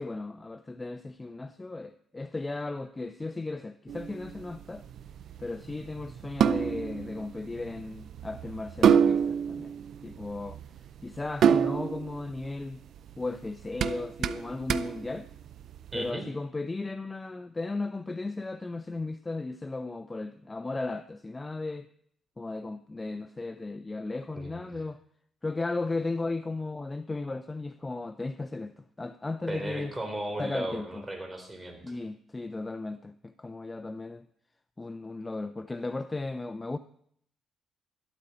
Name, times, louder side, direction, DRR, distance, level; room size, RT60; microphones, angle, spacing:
voice 1, 0.0-4.8 5.4-9.7 10.0-10.6 11.0-12.8 13.2-15.3 15.9-21.9 22.4-25.0 25.4-29.9 30.4-31.0 31.8-34.3 34.8-36.8, left 3 dB, 20° left, 0.5 m, -35 dB
sound 1, 3.9-16.0, right 8 dB, 70° right, 0.5 m, -28 dB
voice 2, 15.9-16.3 24.4-24.7 29.5-31.8, right 1 dB, 15° right, 3.7 m, -36 dB
13.0 x 12.5 x 4.3 m
cardioid pair, 90°, 0 cm